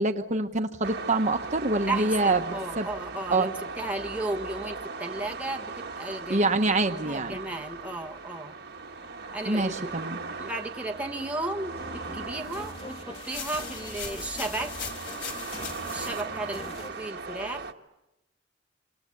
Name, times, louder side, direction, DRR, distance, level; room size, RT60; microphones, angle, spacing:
voice 1, 0.0-2.9 3.3-3.5 6.3-7.4 9.5-10.2, right 2 dB, 40° right, 5 dB, 1.1 m, -26 dB
sound 1, 0.8-17.7, right 4 dB, 60° right, 1.8 m, -39 dB
voice 2, 1.9-6.6 6.9-8.5 9.3-9.9 10.4-14.7 15.9-17.6, right 2 dB, 10° right, 2 dB, 1.5 m, -34 dB
sound 2, 11.7-16.9, left 1 dB, 30° left, 2.8 m, -43 dB
sound 3, 13.1-16.2, left 6 dB, 70° left, 5.5 m, -39 dB
27.0 x 26.5 x 8.2 m, 0.95 s
head